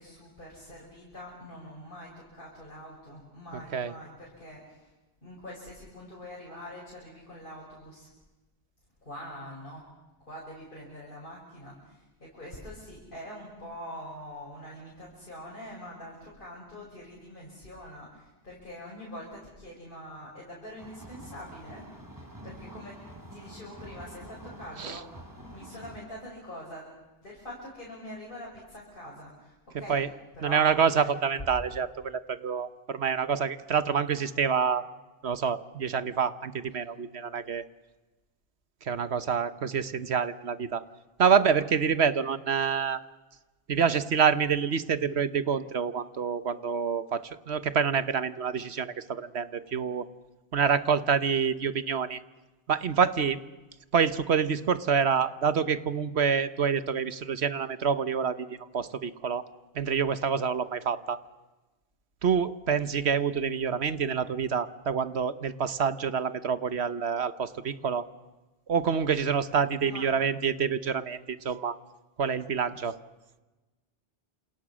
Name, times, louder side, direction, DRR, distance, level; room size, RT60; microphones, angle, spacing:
voice 1, 0.0-4.9 5.2-8.1 9.0-9.8 10.2-21.8 22.4-23.0 23.3-25.1 25.5-26.9 27.2-30.0 30.3-31.1 69.8-70.1, equal, 50° left, -4 dB, 6.4 m, -44 dB
voice 2, 3.5-3.9 24.8-25.0 29.9-30.1 30.4-34.8 35.2-37.6 38.8-40.8 41.2-43.0 43.7-50.1 50.5-52.2 52.7-53.4 53.9-59.4 59.7-61.2 62.2-68.1 68.7-71.8 72.2-72.9, right 6 dB, 70° right, 13 dB, 1.4 m, -27 dB
sound 1, 20.8-26.0, equal, 15° right, 4.2 m, -47 dB
28.5 x 28.0 x 6.3 m, 1.1 s
omnidirectional pair, 1.1 m